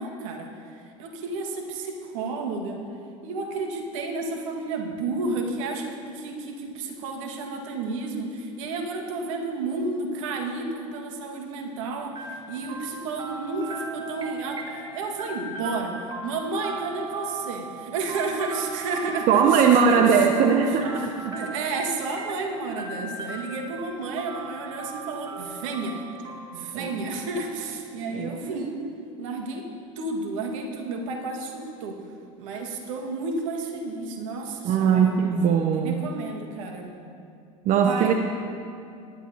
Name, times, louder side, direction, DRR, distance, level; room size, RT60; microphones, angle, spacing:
voice 1, 0.0-2.8 3.2-16.0 16.2-20.5 21.0-21.1 21.3-26.0 26.5-28.9 29.2-29.7 30.0-32.0 32.4-35.5 35.8-36.9 37.8-38.1, right 3 dB, 70° right, 2 dB, 1.8 m, -31 dB
sound 1, 12.2-27.9, right 3 dB, 25° right, 2.0 m, -38 dB
voice 2, 19.3-21.4 26.7-26.9 28.1-28.6 34.6-36.0 37.6-38.1, right 6 dB, 45° right, 4 dB, 0.8 m, -20 dB
18.0 x 11.5 x 2.9 m, 2.5 s
hypercardioid pair, 80°, 18 cm